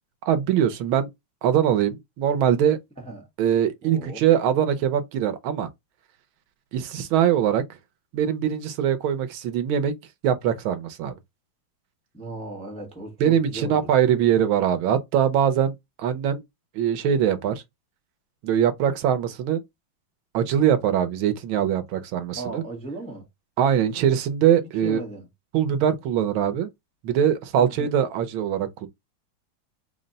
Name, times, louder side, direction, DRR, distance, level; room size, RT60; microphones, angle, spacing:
voice 1, 0.2-1.1 1.4-2.8 3.4-5.7 6.7-7.6 8.1-9.9 10.2-11.1 13.2-16.4 16.7-17.5 18.4-19.6 20.3-22.6 23.6-25.0 25.5-26.7 27.0-28.9, right 9 dB, 80° right, 1.6 m, -22 dB
voice 2, 3.0-3.3 3.8-4.2 12.1-13.9 22.4-23.2 24.8-25.3 27.6-28.0, right 2 dB, 5° left, 0.6 m, -36 dB
4.1 x 2.1 x 3.9 m
omnidirectional pair, 2.2 m